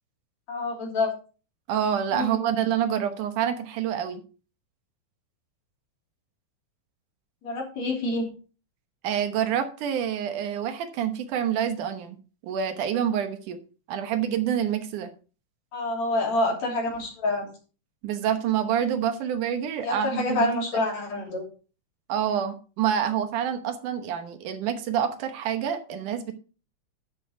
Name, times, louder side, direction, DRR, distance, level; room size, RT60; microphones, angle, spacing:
voice 1, 0.5-1.1 2.1-2.4 7.4-8.3 15.7-17.5 19.8-21.4, left 2 dB, 60° left, 0 dB, 4.3 m, -27 dB
voice 2, 1.7-4.2 9.0-12.2 12.4-13.6 13.9-15.1 18.0-20.5 22.1-26.3, right 9 dB, 80° right, 8 dB, 2.6 m, -27 dB
11.5 x 6.7 x 4.3 m, 0.36 s
omnidirectional pair, 3.6 m